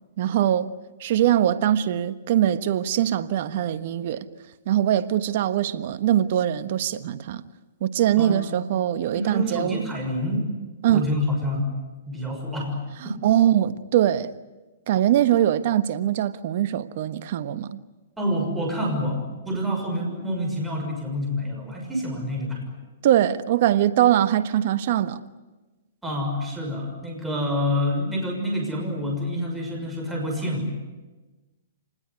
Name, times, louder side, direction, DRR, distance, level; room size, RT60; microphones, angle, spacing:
voice 1, 0.2-0.7 1.0-4.3 4.7-7.4 7.8-9.8 10.8-11.0 13.2-14.3 14.9-17.8 23.0-25.2, right 11 dB, 55° right, 1.3 m, -22 dB
voice 2, 9.1-10.5 10.9-11.8 12.1-12.8 13.0-13.2 18.2-22.6 26.0-30.8, left 1 dB, 5° right, 6.3 m, -27 dB
26.5 x 20.5 x 9.7 m
hypercardioid pair, 135°, 0 cm